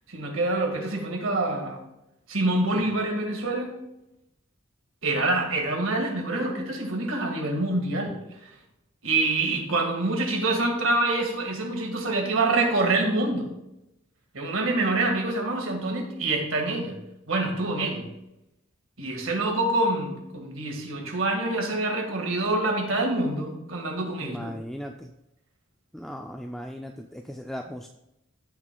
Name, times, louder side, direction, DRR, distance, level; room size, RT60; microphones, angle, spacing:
voice 1, 0.1-1.8 2.3-3.7 5.0-8.2 9.0-13.5 14.3-17.0 17.3-18.0 19.0-24.5, right 2 dB, 80° right, 3 dB, 1.8 m, -26 dB
voice 2, 24.2-25.1 25.9-27.9, equal, ahead, 3 dB, 0.3 m, -37 dB
15.5 x 6.1 x 2.3 m, 0.89 s
head